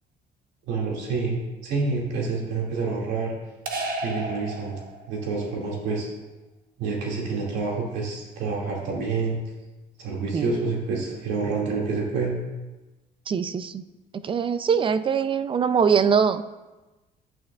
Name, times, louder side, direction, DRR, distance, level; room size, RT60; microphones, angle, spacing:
voice 1, 0.7-3.3 4.0-6.1 6.8-9.4 10.0-12.3, right 4 dB, 90° right, -3 dB, 2.3 m, -28 dB
sound 1, 3.7-5.3, right 2 dB, 60° right, 1.3 m, -32 dB
voice 2, 13.3-13.8 14.1-16.4, right 6 dB, 30° right, 12 dB, 0.5 m, -22 dB
10.5 x 9.1 x 2.4 m, 1.1 s
cardioid pair, 110°, 17 cm